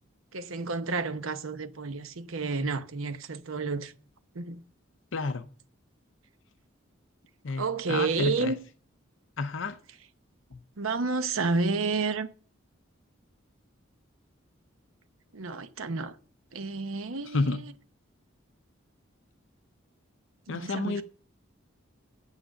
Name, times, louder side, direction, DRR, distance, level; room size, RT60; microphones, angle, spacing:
voice 1, 0.3-3.9 4.3-4.6 7.6-8.6 10.8-12.3 15.3-16.2 16.5-17.7 20.5-21.0, right 4 dB, 80° right, 0.9 m, -30 dB
voice 2, 5.1-5.4 7.4-8.5 9.4-9.8 17.3-17.6 20.5-21.0, left 3 dB, 65° left, 0.6 m, -30 dB
8.5 x 8.3 x 6.5 m
head